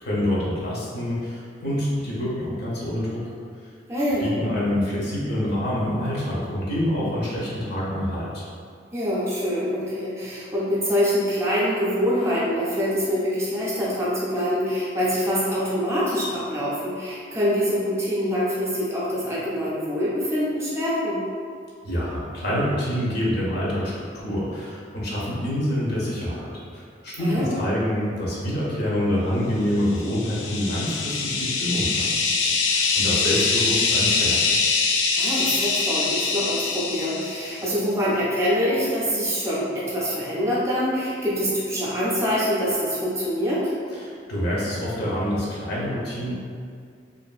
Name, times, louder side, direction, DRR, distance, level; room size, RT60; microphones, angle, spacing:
voice 1, 0.0-3.2 4.2-8.3 21.8-34.6 43.9-46.3, equal, 60° left, -6 dB, 0.7 m, -26 dB
voice 2, 3.9-4.3 8.9-21.2 27.2-27.6 35.2-43.7, equal, 15° right, -8 dB, 0.5 m, -25 dB
sound 1, 29.9-37.7, left 4 dB, 85° left, 0.3 m, -23 dB
2.5 x 2.5 x 2.3 m, 2.2 s
head